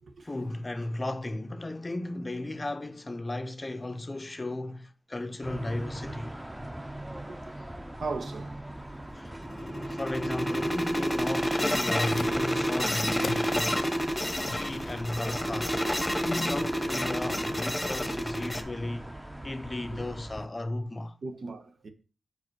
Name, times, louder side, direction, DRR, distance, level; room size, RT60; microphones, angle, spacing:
voice 1, 0.2-6.3 9.1-13.9 14.5-15.9 16.2-21.2, left 2 dB, 30° left, 0.6 m, -35 dB
sound 1, 5.4-20.5, right 1 dB, 10° right, 0.8 m, -42 dB
voice 2, 7.9-8.5 9.8-9.9 16.2-16.6 19.9-20.0 21.2-21.9, right 3 dB, 70° right, 1.1 m, -38 dB
sound 2, 9.2-18.6, equal, 10° left, 0.9 m, -29 dB
sound 3, 11.8-18.6, left 3 dB, 75° left, 0.7 m, -43 dB
5.0 x 4.9 x 6.2 m
cardioid pair, 60°, 0 cm